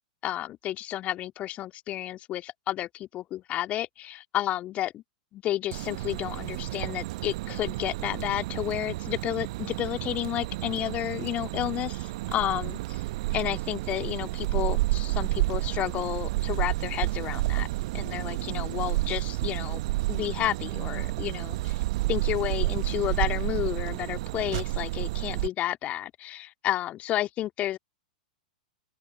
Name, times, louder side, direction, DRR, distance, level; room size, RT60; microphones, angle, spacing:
voice 1, 0.2-5.0 5.3-13.0 13.3-17.7 17.9-19.8 20.1-21.8 22.1-27.8, left 13 dB, 30° left, 2.3 m, -31 dB
sound 1, 5.7-25.5, right 19 dB, 50° right, 1.0 m, -30 dB
open air
figure-of-eight pair, 100°, 4 cm